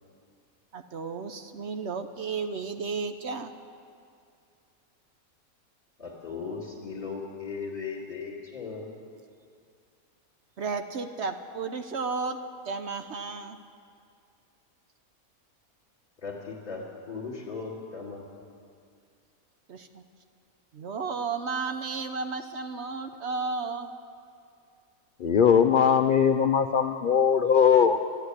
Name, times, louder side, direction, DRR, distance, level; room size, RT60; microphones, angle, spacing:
voice 1, 0.7-3.5 10.6-13.6 19.7-20.0 20.7-23.9, right 4 dB, 55° right, 8 dB, 0.9 m, -33 dB
voice 2, 6.0-8.9 16.2-18.4, left 5 dB, 35° left, -6 dB, 2.5 m, -37 dB
voice 3, 25.2-28.0, left 7 dB, 80° left, 7 dB, 0.4 m, -20 dB
13.0 x 11.5 x 9.7 m, 2.4 s
omnidirectional pair, 1.5 m